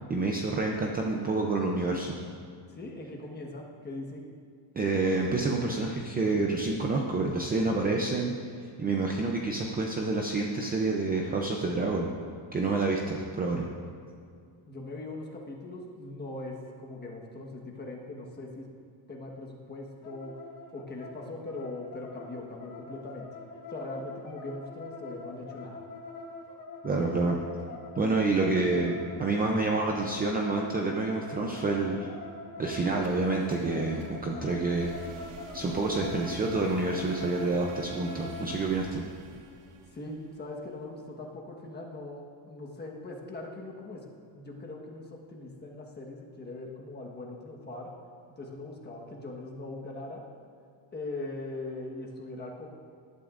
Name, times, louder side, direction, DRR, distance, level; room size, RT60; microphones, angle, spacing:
voice 1, 0.1-2.2 4.8-8.3 8.8-12.1 12.5-13.7 26.8-27.4 28.0-32.1 32.6-34.9 35.5-39.0, right 3 dB, 20° right, 0 dB, 0.5 m, -28 dB
voice 2, 2.7-4.2 14.7-18.7 19.1-20.4 20.7-23.3 23.7-25.8 39.9-44.1 44.3-47.9 48.4-50.2 50.9-52.7, left 2 dB, 20° left, -1 dB, 1.3 m, -40 dB
sound 1, 20.0-38.7, left 3 dB, 40° left, 1.5 m, -44 dB
sound 2, 32.9-40.9, right 4 dB, 75° right, 1.4 m, -47 dB
18.0 x 12.0 x 2.5 m, 2.3 s
cardioid pair, 170°, 50 cm